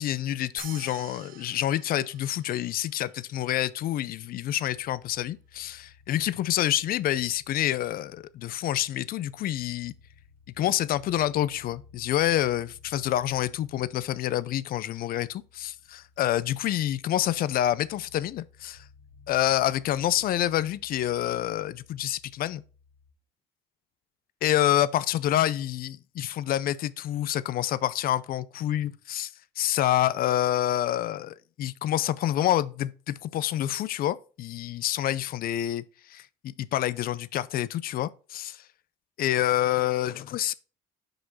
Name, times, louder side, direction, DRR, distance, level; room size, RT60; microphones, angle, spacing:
voice 1, 0.0-9.9 10.6-15.8 16.2-18.8 19.3-22.6 24.4-29.3 29.6-35.8 36.1-38.6 39.2-40.5, left 12 dB, 60° left, 0.5 m, -27 dB
sound 1, 0.6-3.3, right 10 dB, 55° right, 0.7 m, -48 dB
sound 2, 4.7-23.1, left 5 dB, 10° left, 1.9 m, -57 dB
6.1 x 5.0 x 3.9 m
cardioid pair, 110°, 17 cm